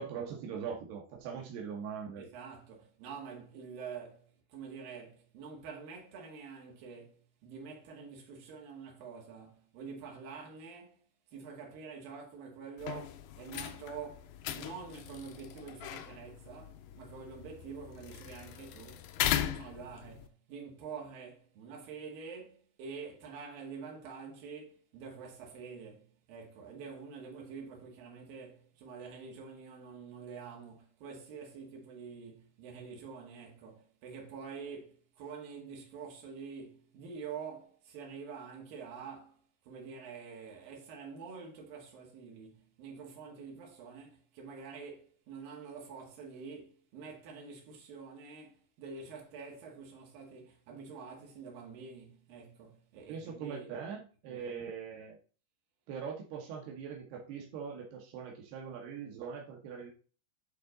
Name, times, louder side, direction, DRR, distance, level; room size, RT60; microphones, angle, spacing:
voice 1, 0.0-2.2 53.1-55.2 55.9-59.9, right 6 dB, 85° right, 3.1 m, -41 dB
voice 2, 2.2-11.0 11.3-39.4 39.6-53.7 54.3-54.6, right 5 dB, 65° right, 3.5 m, -47 dB
sound 1, 12.8-20.3, left 12 dB, 90° left, 2.0 m, -39 dB
9.5 x 3.8 x 3.8 m
omnidirectional pair, 4.5 m